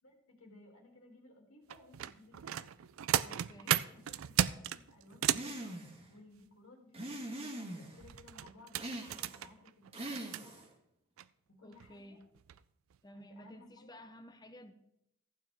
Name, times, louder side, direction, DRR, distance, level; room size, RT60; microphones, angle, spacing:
voice 1, 0.0-2.9 3.6-5.8 6.1-7.1 7.4-10.6 11.5-12.2 13.1-13.9, left 2 dB, 75° left, 1 dB, 2.6 m, -59 dB
sound 1, 1.7-5.5 8.0-10.4 11.2-11.3 11.7-11.9 12.4-12.6 12.9-13.0, right 10 dB, 70° right, 0.4 m, -35 dB
voice 2, 3.2-3.8 11.6-12.3 13.0-14.7, equal, 20° left, 9 dB, 0.7 m, -53 dB
sound 2, 5.3-6.0 6.9-8.0 8.7-9.5 9.9-10.7, right 1 dB, 25° right, 1.6 m, -42 dB
15.0 x 8.7 x 3.5 m, 0.81 s
head